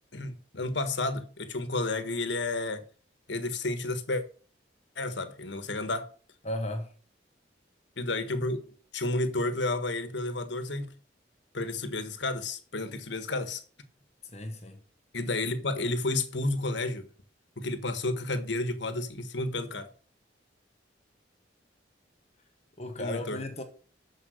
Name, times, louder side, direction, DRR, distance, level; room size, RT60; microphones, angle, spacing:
voice 1, 0.1-2.8 3.3-4.2 5.0-6.1 8.0-10.9 11.5-13.6 15.1-17.1 17.6-19.9 23.0-23.4, left 2 dB, 75° left, 1.4 m, -31 dB
voice 2, 6.4-6.9 14.3-14.8 22.8-23.6, left 1 dB, 35° left, 1.2 m, -35 dB
13.0 x 5.2 x 6.5 m
head